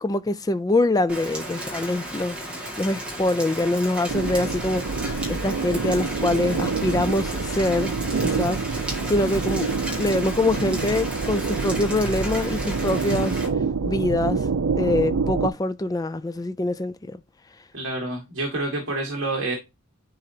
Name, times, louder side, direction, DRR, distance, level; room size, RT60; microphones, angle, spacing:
voice 1, 0.0-2.4 2.8-4.9 5.3-7.9 8.2-8.6 9.0-9.7 10.0-13.4 13.8-14.5 14.8-17.2, left 2 dB, 15° left, 0.3 m, -24 dB
Rain, 1.1-13.5, equal, 5° right, 1.8 m, -34 dB
sound 1, 4.1-15.5, right 4 dB, 85° right, 0.5 m, -27 dB
voice 2, 17.7-19.6, right 2 dB, 55° right, 1.7 m, -28 dB
10.5 x 3.9 x 2.7 m
head